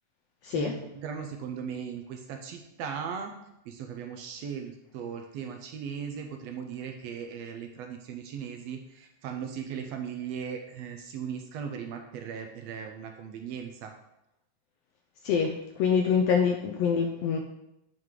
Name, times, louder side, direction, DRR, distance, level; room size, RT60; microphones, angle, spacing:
voice 1, 0.5-3.3 3.7-13.9, right 7 dB, 75° right, 5 dB, 1.6 m, -38 dB
voice 2, 15.8-17.4, left 6 dB, 80° left, 3 dB, 1.5 m, -25 dB
9.1 x 4.7 x 3.7 m, 0.84 s
omnidirectional pair, 3.3 m